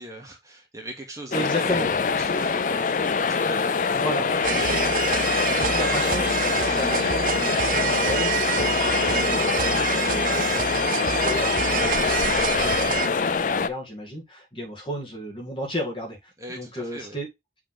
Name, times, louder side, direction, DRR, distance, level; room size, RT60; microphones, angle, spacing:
voice 1, 0.0-5.5 16.4-17.2, right 1 dB, 20° right, 1.7 m, -41 dB
sound 1, 1.3-13.7, left 5 dB, 45° left, 0.4 m, -24 dB
voice 2, 1.3-1.9 3.9-4.3 5.5-10.6 10.9-12.9 13.3-16.3 16.6-17.3, equal, 30° left, 2.1 m, -33 dB
sound 2, 4.4-13.1, right 8 dB, 50° right, 0.4 m, -27 dB
7.1 x 3.6 x 3.8 m
head